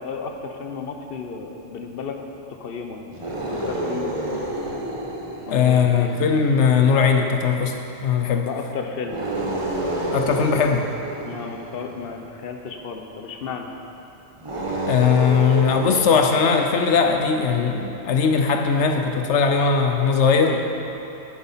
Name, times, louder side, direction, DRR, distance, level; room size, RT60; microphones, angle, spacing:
voice 1, 0.0-2.2 2.5-4.8 5.5-6.2 8.5-9.2 11.2-13.7 20.4-20.6, left 5 dB, 55° left, 4 dB, 1.0 m, -33 dB
sound 1, 3.1-6.7 9.0-12.1 14.4-17.1, right 1 dB, 25° right, 1.3 m, -30 dB
voice 2, 5.5-8.5 10.1-10.9 14.9-20.6, left 6 dB, 80° left, 4 dB, 1.0 m, -19 dB
11.0 x 9.4 x 5.7 m, 3.0 s
omnidirectional pair, 1.2 m